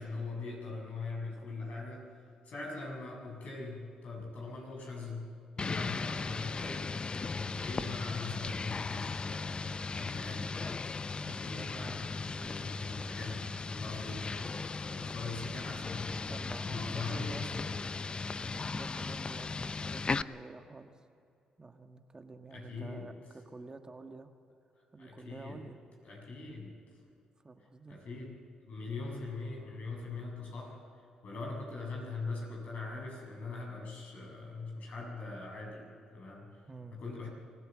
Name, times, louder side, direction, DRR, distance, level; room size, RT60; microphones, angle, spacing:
voice 1, 0.0-2.1 2.4-6.9 7.4-10.7 11.3-16.1 16.6-17.8 22.5-23.1 25.0-25.6 26.0-26.7 27.9-28.3 28.6-30.8 31.2-36.6 36.9-37.3, left 3 dB, 65° left, -1 dB, 7.3 m, -42 dB
sound 1, 5.6-20.2, left 4 dB, 35° left, 0.6 m, -37 dB
voice 2, 11.2-12.0 16.3-17.7 18.4-20.9 21.6-24.3 24.9-25.8 27.4-28.0 36.7-37.0, right 3 dB, 30° right, 6 dB, 1.5 m, -49 dB
24.5 x 16.5 x 7.6 m, 2.5 s
supercardioid pair, 50°, 3 cm